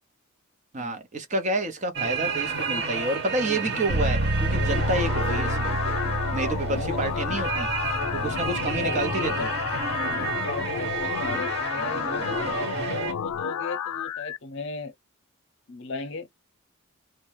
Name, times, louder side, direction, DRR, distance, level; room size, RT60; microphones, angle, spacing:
voice 1, 0.7-5.8 6.3-7.7 8.1-9.5, right 2 dB, 35° right, 0.6 m, -29 dB
sound 1, 1.9-13.1, right 5 dB, 50° right, 1.1 m, -31 dB
sound 2, 3.9-11.6, right 1 dB, 75° right, 0.7 m, -30 dB
sound 3, 4.4-14.4, left 9 dB, 85° left, 0.3 m, -31 dB
voice 2, 6.6-7.4 8.2-8.5 8.8-9.5 10.0-14.9 15.7-16.3, left 3 dB, 55° left, 0.7 m, -36 dB
2.6 x 2.1 x 3.1 m
head